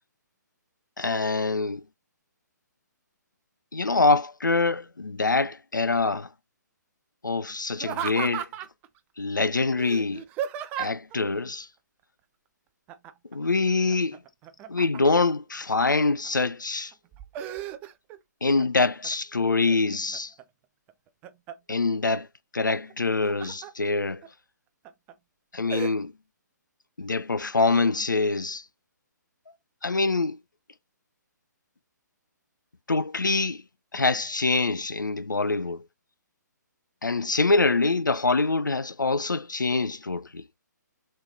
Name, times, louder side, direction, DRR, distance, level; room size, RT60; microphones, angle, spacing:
voice 1, 1.0-1.8 3.7-6.3 7.2-8.5 9.2-10.2 10.8-11.7 13.3-14.2 14.7-16.9 18.4-20.3 21.7-22.3 22.5-24.2 25.5-26.1 27.0-28.6 29.8-30.4 32.9-33.6 33.9-35.8 37.0-40.4, left 3 dB, 85° left, 0.4 m, -25 dB
Laughter, 7.8-8.9 9.8-11.2 12.9-13.4 13.7-15.3 15.8-16.5 16.9-18.2 18.6-19.2 19.7-20.4 20.9-21.8 22.9-23.7 24.2-24.3 24.9-25.1 25.7-25.9, right 10 dB, 15° right, 0.3 m, -35 dB
3.2 x 3.1 x 3.9 m
figure-of-eight pair, 130°, 10 cm